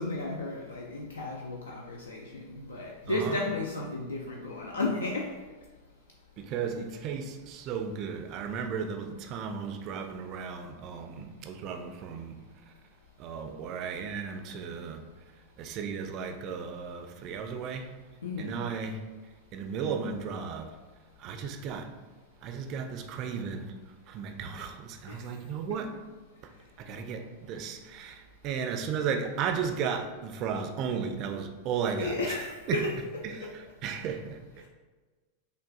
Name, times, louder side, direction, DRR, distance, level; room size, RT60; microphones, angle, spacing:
voice 1, 0.0-5.3 18.2-18.6 25.1-25.2 32.0-32.9 33.4-33.5, left 2 dB, 70° left, -1 dB, 0.4 m, -33 dB
voice 2, 3.1-3.4 6.4-12.7 13.2-15.1 15.3-17.9 18.4-19.0 19.5-20.8 21.2-21.9 22.4-23.7 24.1-26.0 26.4-32.4 32.7-32.8 33.2-34.7, right 6 dB, 40° right, 6 dB, 0.4 m, -35 dB
6.2 x 2.3 x 2.3 m, 1.3 s
figure-of-eight pair, 90°, 0 cm